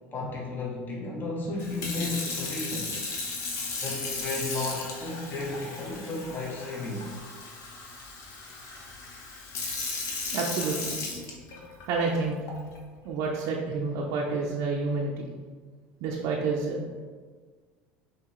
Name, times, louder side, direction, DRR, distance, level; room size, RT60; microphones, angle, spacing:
voice 1, 0.1-3.0 3.8-7.2, left 2 dB, 35° left, -3 dB, 1.2 m, -34 dB
Sink (filling or washing) / Fill (with liquid), 1.6-11.8 12.5-12.8, left 3 dB, 60° left, 1.0 m, -36 dB
voice 2, 10.3-11.0 11.9-12.4 13.0-15.3 16.0-16.8, right 4 dB, 65° right, -2 dB, 0.6 m, -29 dB
5.6 x 2.9 x 3.1 m, 1.5 s
hypercardioid pair, 80°, 6 cm